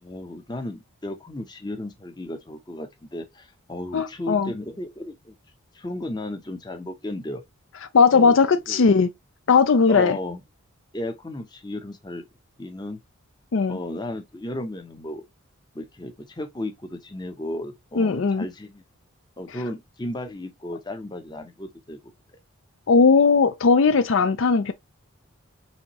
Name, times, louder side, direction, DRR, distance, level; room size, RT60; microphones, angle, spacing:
voice 1, 0.0-5.4 5.7-7.4 8.1-8.4 8.7-8.8 9.9-10.4 10.9-12.2 12.6-13.0 13.7-15.2 15.7-18.8 19.4-22.0, left 1 dB, 20° left, 0.7 m, -34 dB
voice 2, 3.9-4.5 7.9-9.1 9.5-10.2 13.5-13.8 18.0-18.5 22.9-24.7, left 5 dB, 60° left, 0.4 m, -18 dB
4.3 x 3.5 x 3.0 m
head